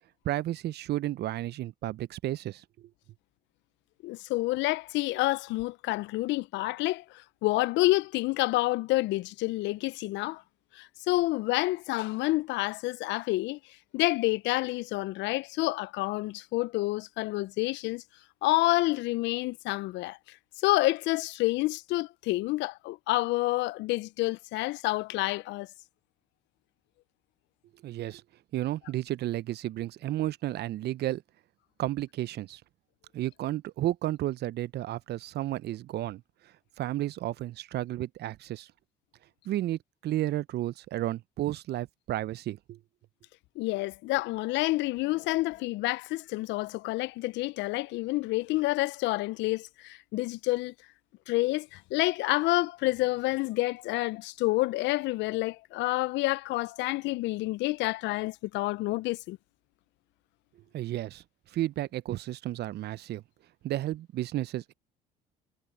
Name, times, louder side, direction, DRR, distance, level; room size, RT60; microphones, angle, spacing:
voice 1, 0.2-2.9 27.8-28.2 28.5-31.2 31.8-32.6 33.1-36.2 36.8-38.7 39.4-42.8 60.7-61.2 61.5-63.2 63.6-64.7, right 14 dB, 55° right, 1.0 m, -32 dB
voice 2, 4.0-7.0 7.4-10.4 10.7-13.6 13.9-18.0 18.4-20.2 20.6-25.7 43.6-50.7 51.3-59.4, left 19 dB, 65° left, 1.0 m, -28 dB
hypercardioid pair, 60°, 20 cm